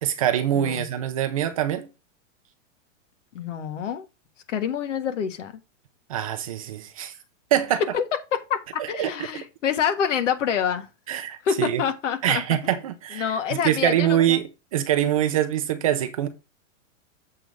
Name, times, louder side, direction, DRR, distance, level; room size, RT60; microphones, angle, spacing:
voice 1, 0.0-1.9 6.1-7.1 7.5-7.8 8.8-9.1 11.1-11.8 12.2-16.3, right 11 dB, 30° right, 0.6 m, -24 dB
voice 2, 3.3-4.0 4.5-5.5 7.9-8.0 8.5-10.9 11.4-12.4 13.1-14.4, left 8 dB, 70° left, 1.7 m, -27 dB
7.5 x 3.6 x 6.5 m
supercardioid pair, 180°, 38 cm